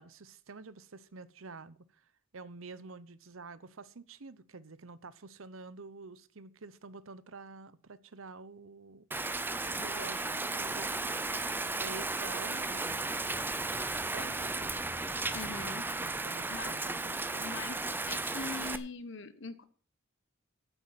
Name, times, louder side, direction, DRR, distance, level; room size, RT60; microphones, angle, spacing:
voice 1, 0.0-9.1 9.7-11.3 11.5-13.2 14.0-14.8 16.0-17.6, right 4 dB, 80° right, 0.9 m, -48 dB
Rain, 9.1-18.8, right 2 dB, 10° right, 0.6 m, -35 dB
voice 2, 15.3-15.8 16.5-16.7 17.4-19.6, left 4 dB, 60° left, 1.3 m, -42 dB
9.2 x 8.4 x 7.5 m
head